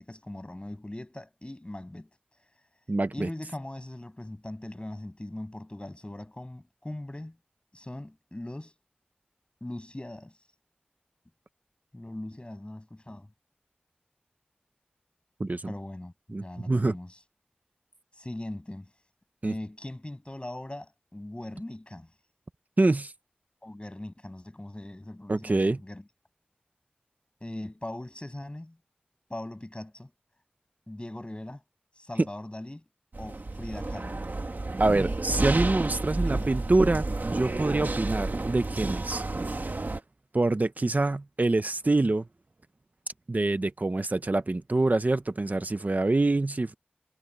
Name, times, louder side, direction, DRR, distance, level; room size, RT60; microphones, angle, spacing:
voice 1, 0.0-2.1 3.1-7.4 7.7-8.7 9.6-10.3 11.9-13.3 15.7-17.2 18.2-18.9 19.4-22.1 23.6-26.0 27.4-28.8 29.3-30.1 30.9-31.6 32.0-32.8 33.2-34.3 34.9-35.1 36.1-36.5, left 1 dB, 35° left, 7.6 m, -40 dB
voice 2, 2.9-3.3 15.4-15.7 16.3-17.0 19.4-19.5 22.8-23.1 25.3-25.8 34.8-39.2 40.3-42.3 43.3-46.7, right 2 dB, 55° right, 0.8 m, -26 dB
sound 1, 33.1-40.0, right 2 dB, 70° right, 1.9 m, -31 dB
wide cardioid pair, 50°, 3 cm